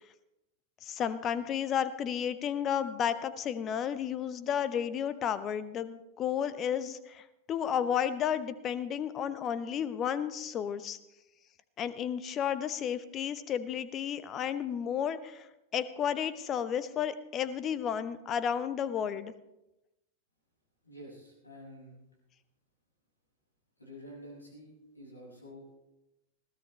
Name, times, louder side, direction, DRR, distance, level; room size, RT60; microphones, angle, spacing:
voice 1, 0.8-11.0 11.8-15.5 15.7-19.3, left 8 dB, 30° left, 14 dB, 0.9 m, -32 dB
voice 2, 20.8-22.0 23.8-25.8, equal, 80° left, -2 dB, 6.1 m, -49 dB
20.5 x 16.0 x 3.3 m, 0.92 s
figure-of-eight pair, 90°, 0 cm